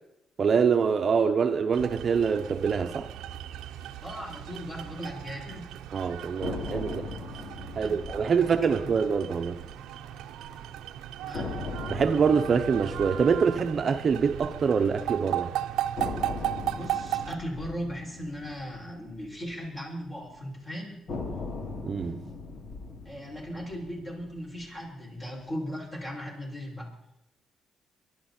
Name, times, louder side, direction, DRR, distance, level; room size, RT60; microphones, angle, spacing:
voice 1, 0.4-3.1 5.9-7.1 7.8-9.6 11.9-15.5 21.8-22.2, right 6 dB, 45° right, 0.9 m, -25 dB
sound 1, 1.7-17.3, right 12 dB, 90° right, 0.8 m, -36 dB
voice 2, 4.0-5.7 7.8-8.0 8.4-8.5 11.2-11.7 16.7-21.1 23.0-26.9, equal, 25° left, 6.5 m, -38 dB
sound 2, 6.4-10.5 10.8-10.9 11.3-15.4 16.0-20.3 21.1-25.4, left 3 dB, 60° left, 3.0 m, -40 dB
24.0 x 12.0 x 4.4 m
cardioid pair, 90°, 0 cm